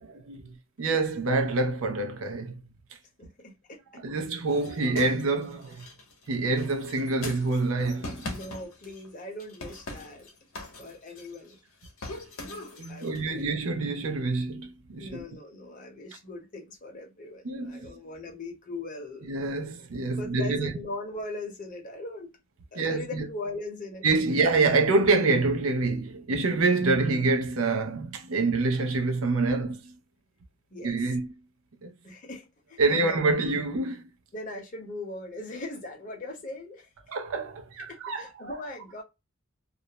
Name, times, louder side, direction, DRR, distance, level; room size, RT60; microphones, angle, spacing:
voice 1, 0.8-2.6 4.0-5.9 6.3-8.4 12.8-15.2 17.4-17.9 19.3-20.7 22.8-23.3 24.0-29.9 30.8-31.3 31.8-31.9 32.8-34.0 37.1-38.5, right 3 dB, 75° right, 0.5 m, -26 dB
voice 2, 3.2-3.8 4.1-4.2 8.2-10.3 10.8-11.6 12.4-13.4 15.0-19.5 20.2-22.3 22.7-24.1 30.7-31.1 32.0-33.4 34.3-36.9 37.8-39.0, left 2 dB, 40° left, 0.8 m, -40 dB
sound 1, 4.5-9.1 9.4-11.5 11.8-13.3, left 2 dB, 80° left, 0.8 m, -41 dB
2.4 x 2.0 x 2.8 m
head